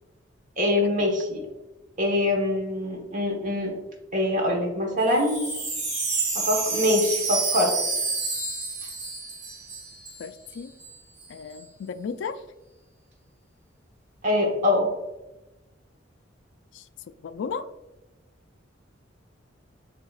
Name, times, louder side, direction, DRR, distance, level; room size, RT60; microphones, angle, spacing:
voice 1, 0.6-1.4 2.0-3.7 4.1-5.5 6.3-7.7 14.2-14.9, left 1 dB, 45° right, 0 dB, 1.2 m, -24 dB
Wind chime, 5.0-10.2 10.5-10.6 10.8-11.3, right 3 dB, 65° right, 1.4 m, -29 dB
voice 2, 10.2-10.7 11.3-12.4 17.2-17.7, left 5 dB, 65° left, 12 dB, 0.3 m, -34 dB
7.0 x 2.8 x 2.4 m, 1.0 s
head